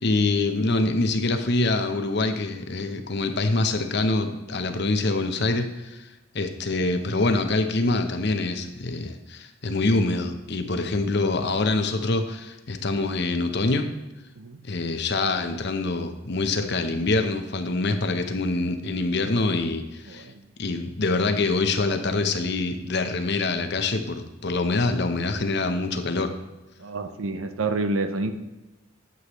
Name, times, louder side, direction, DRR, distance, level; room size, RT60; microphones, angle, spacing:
voice 1, 0.0-6.0 6.3-13.9 14.6-20.2 20.6-26.3, left 3 dB, 55° left, 7 dB, 0.8 m, -25 dB
voice 2, 26.8-28.3, right 3 dB, 90° right, 9 dB, 0.8 m, -28 dB
9.7 x 7.9 x 3.1 m, 1.1 s
head